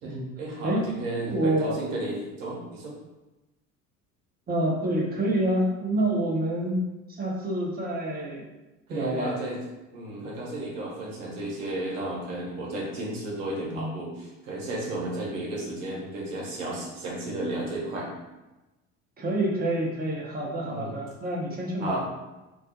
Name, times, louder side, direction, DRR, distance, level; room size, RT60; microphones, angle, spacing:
voice 1, 0.0-2.9 8.9-9.6 9.9-18.1 20.6-20.9 21.8-22.0, right 1 dB, 70° right, -3 dB, 0.9 m, -33 dB
voice 2, 1.2-1.8 4.5-6.8 7.1-8.4 8.9-9.3 13.7-13.9 19.2-22.0, right 1 dB, 20° right, -2 dB, 0.6 m, -27 dB
2.4 x 2.0 x 2.8 m, 1.1 s
figure-of-eight pair, 60°, 43 cm